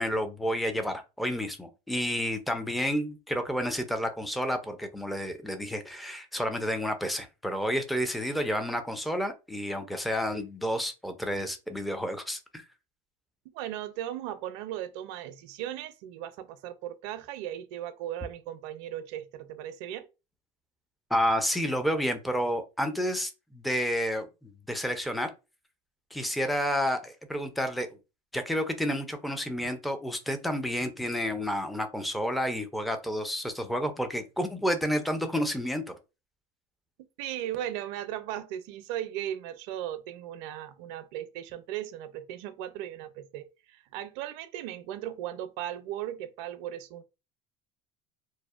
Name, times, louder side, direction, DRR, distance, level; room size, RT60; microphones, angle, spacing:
voice 1, 0.0-12.7 21.1-25.3 26.1-27.9 28.3-35.9, equal, ahead, 0.4 m, -30 dB
voice 2, 13.5-20.1 37.2-47.0, right 12 dB, 75° right, 0.5 m, -37 dB
2.6 x 2.0 x 2.3 m
supercardioid pair, 110°, 15 cm